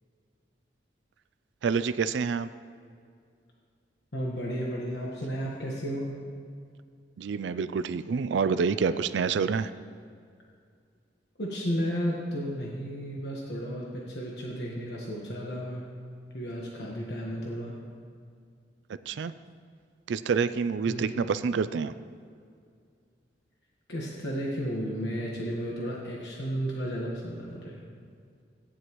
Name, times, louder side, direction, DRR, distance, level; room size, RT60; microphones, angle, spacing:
voice 1, 1.6-2.5 7.2-9.7 19.1-19.3 20.1-21.9, right 5 dB, 80° right, 13 dB, 0.4 m, -27 dB
voice 2, 4.1-6.1 8.8-8.9 11.4-15.8 16.3-17.8 20.9-21.3 23.9-27.8, equal, 65° left, -3 dB, 1.3 m, -33 dB
15.5 x 9.7 x 3.1 m, 2.2 s
head